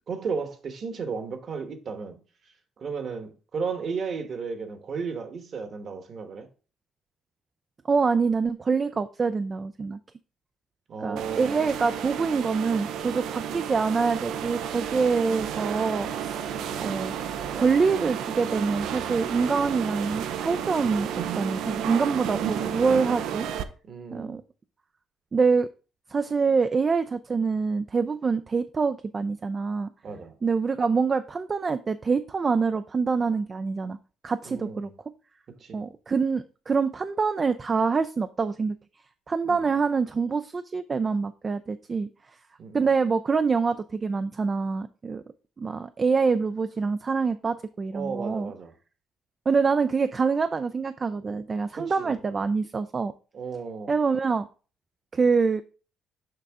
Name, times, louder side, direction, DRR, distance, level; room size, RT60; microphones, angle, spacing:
voice 1, 0.1-2.2 2.8-6.5 10.9-11.7 13.4-13.8 16.5-17.0 22.3-22.8 23.8-24.4 30.0-30.4 34.4-34.9 35.6-35.9 39.4-39.8 42.6-42.9 47.9-48.7 51.7-52.2 53.3-54.0, right 5 dB, 50° right, 1.3 m, -35 dB
voice 2, 7.9-10.0 11.0-17.2 17.5-23.5 24.1-24.4 25.3-25.7 26.1-29.9 30.4-34.0 34.2-34.9 35.7-38.8 39.3-42.1 42.7-45.2 45.6-48.5 49.5-53.1 53.9-54.5 55.1-55.6, right 5 dB, 30° right, 0.4 m, -25 dB
sound 1, 11.2-23.6, right 9 dB, 75° right, 0.6 m, -32 dB
6.6 x 5.4 x 3.5 m
cardioid pair, 100°, 0 cm